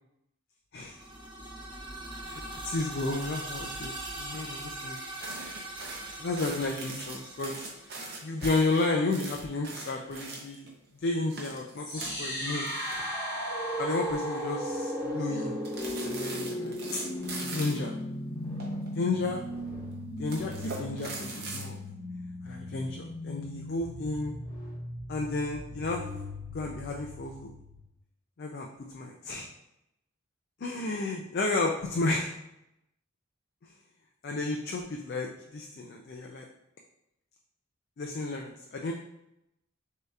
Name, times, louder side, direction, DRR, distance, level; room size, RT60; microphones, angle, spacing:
sound 1, 0.8-8.7, right 1 dB, 20° right, 0.6 m, -41 dB
voice 1, 2.3-5.0 6.2-7.6 8.2-10.7 11.0-12.7 13.8-15.6 16.0-17.0 17.4-17.9 18.9-19.4 20.2-21.8 22.5-24.3 25.1-26.0 26.5-27.5 28.4-29.5 30.6-32.3 34.2-36.4 38.0-38.9, left 3 dB, 50° left, 1 dB, 0.4 m, -32 dB
sound 2, 5.2-10.7 11.2-13.5 13.8-14.0 14.4-14.8 15.6-17.9 18.6-19.4 20.2-21.7, right 3 dB, 50° right, 0.8 m, -41 dB
sound 3, 11.8-27.8, equal, 20° left, 1.5 m, -36 dB
6.3 x 2.8 x 2.4 m, 0.85 s
head